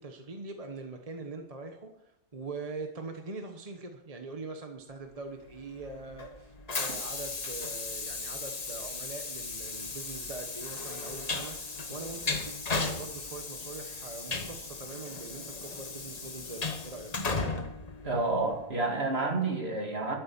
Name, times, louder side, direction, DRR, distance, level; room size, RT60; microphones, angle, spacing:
voice 1, 0.0-17.1, right 3 dB, 30° right, 4 dB, 1.1 m, -43 dB
Train, 5.5-18.7, left 3 dB, 30° left, 1.2 m, -36 dB
voice 2, 18.0-20.2, right 3 dB, 50° right, 1 dB, 2.7 m, -29 dB
12.5 x 9.5 x 7.1 m, 0.85 s
omnidirectional pair, 1.4 m